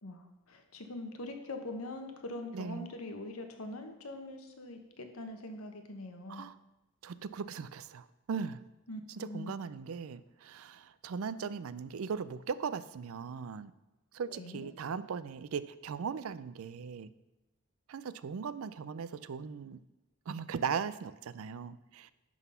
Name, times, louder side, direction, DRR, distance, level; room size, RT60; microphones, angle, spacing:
voice 1, 0.0-6.4 8.9-9.6 14.2-14.7, left 2 dB, 80° left, 5 dB, 1.2 m, -43 dB
voice 2, 2.5-2.9 6.3-6.5 7.0-8.6 9.2-13.7 14.1-17.1 17.9-19.8 20.3-22.1, right 6 dB, 75° right, 16 dB, 0.4 m, -38 dB
11.0 x 4.0 x 5.6 m, 1.0 s
head